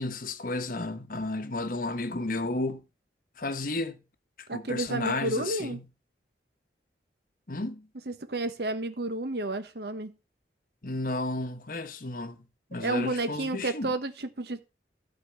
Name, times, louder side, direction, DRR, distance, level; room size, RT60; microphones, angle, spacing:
voice 1, 0.0-2.8 3.4-4.0 4.4-5.9 7.5-7.9 10.8-12.4 12.7-13.9, left 2 dB, 50° left, 1.0 m, -33 dB
voice 2, 4.5-5.8 8.1-10.1 12.8-14.7, right 2 dB, 65° right, 1.1 m, -31 dB
12.0 x 4.3 x 6.9 m
head